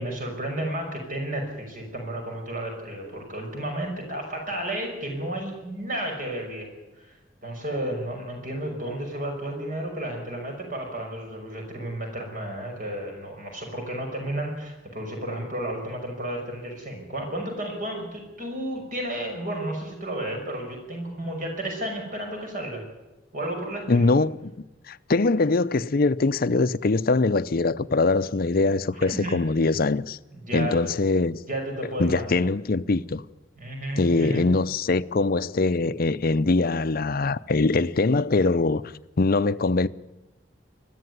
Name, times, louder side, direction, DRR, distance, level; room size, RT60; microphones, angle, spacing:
voice 1, 0.0-7.2 7.4-22.8 23.3-24.1 29.0-29.4 30.5-30.8 31.5-32.4 33.6-34.4, right 1 dB, 45° right, 5.8 m, -32 dB
voice 2, 23.9-24.5 24.9-30.2 30.5-31.4 32.0-33.2 34.0-38.8 39.2-39.9, left 3 dB, 55° left, 0.6 m, -22 dB
21.5 x 14.5 x 9.5 m
head